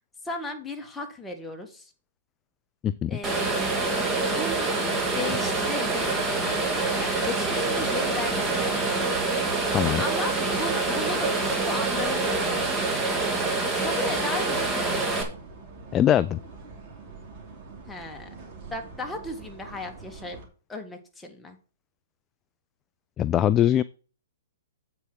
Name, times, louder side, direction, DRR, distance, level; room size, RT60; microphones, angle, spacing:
voice 1, 0.2-1.9 3.1-3.8 4.1-6.3 7.0-8.9 10.0-13.0 13.8-15.0 17.9-18.3 18.7-20.4 20.7-21.6, left 2 dB, 5° left, 1.7 m, -36 dB
sound 1, 3.2-15.2, right 3 dB, 10° right, 1.9 m, -26 dB
sound 2, 3.2-20.5, right 3 dB, 35° right, 2.8 m, -45 dB
voice 2, 15.9-16.4 23.2-23.8, left 11 dB, 25° left, 0.3 m, -21 dB
8.2 x 5.0 x 6.0 m
hypercardioid pair, 130°, 0 cm